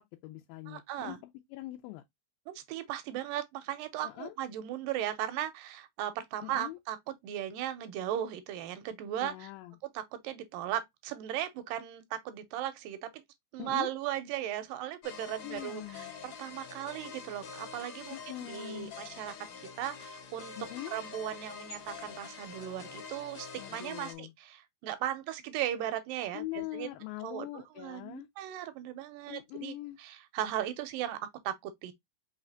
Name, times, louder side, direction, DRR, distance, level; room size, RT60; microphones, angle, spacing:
voice 1, 0.0-2.0 4.0-4.4 6.4-6.8 9.2-9.8 13.6-13.9 15.4-16.1 18.1-18.9 20.6-21.0 23.6-24.3 26.3-28.3 29.3-30.0, left 17 dB, 90° left, 2.3 m, -42 dB
voice 2, 0.7-1.2 2.5-9.5 9.9-13.1 13.5-19.3 19.8-20.6 20.9-26.9 27.2-31.9, right 11 dB, 85° right, 2.3 m, -37 dB
sound 1, 15.0-24.1, left 6 dB, 75° left, 1.3 m, -46 dB
5.5 x 3.3 x 2.5 m
omnidirectional pair, 4.0 m